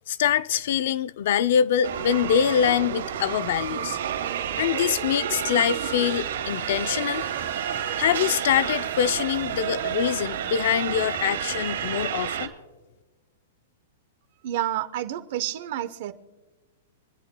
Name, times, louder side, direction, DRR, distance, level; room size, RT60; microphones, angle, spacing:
voice 1, 0.1-4.0 4.6-7.4 7.7-12.5, left 9 dB, 60° left, 0.4 m, -24 dB
sound 1, 1.8-12.5, right 9 dB, 85° right, 2.0 m, -30 dB
voice 2, 14.4-16.1, right 13 dB, 50° right, 0.9 m, -29 dB
26.0 x 10.5 x 2.2 m
supercardioid pair, 165°, 0 cm